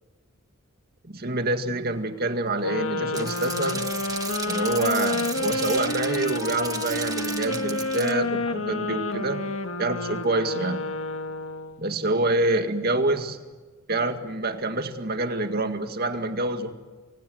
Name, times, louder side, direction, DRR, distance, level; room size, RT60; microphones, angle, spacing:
voice 1, 1.0-3.9 4.5-9.4 9.8-10.9 11.8-13.4 13.9-16.7, right 2 dB, 45° right, 7 dB, 2.1 m, -26 dB
sound 1, 2.6-11.8, left 2 dB, 70° left, 1.8 m, -29 dB
sound 2, 3.1-8.1, right 5 dB, 15° right, 1.5 m, -34 dB
29.0 x 25.0 x 8.0 m, 1.3 s
head